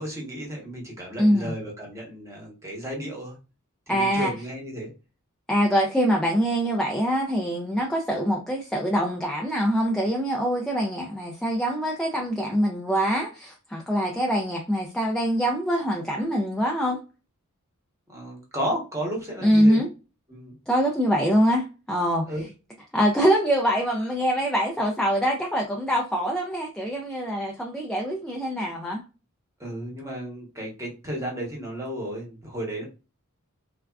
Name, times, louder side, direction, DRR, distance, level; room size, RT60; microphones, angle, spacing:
voice 1, 0.0-3.4 3.9-4.9 18.1-19.8 20.3-20.5 22.2-22.4 29.6-32.9, right 1 dB, 15° right, 0.9 m, -33 dB
voice 2, 1.2-1.5 3.9-4.3 5.5-17.0 19.4-19.9 20.7-22.3 22.9-29.0, equal, 5° left, 0.3 m, -24 dB
3.4 x 2.3 x 2.2 m
head